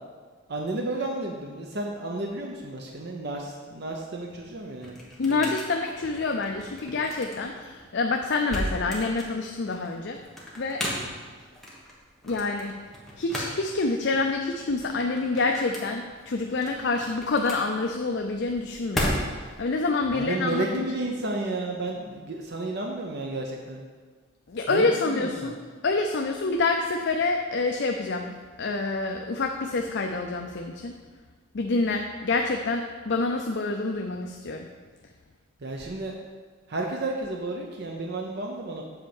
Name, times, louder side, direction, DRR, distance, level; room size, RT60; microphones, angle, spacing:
voice 1, 0.5-5.4 20.1-23.8 24.7-25.5 35.6-36.2 36.7-38.8, right 2 dB, 50° right, 1 dB, 0.7 m, -32 dB
sound 1, 4.3-19.6, equal, ahead, 1.3 m, -36 dB
voice 2, 5.2-10.2 10.6-10.9 12.2-12.8 13.2-20.8 24.5-25.5 25.8-31.0 31.5-34.7, left 3 dB, 55° left, 3 dB, 0.5 m, -27 dB
7.9 x 4.4 x 7.1 m, 1.5 s
head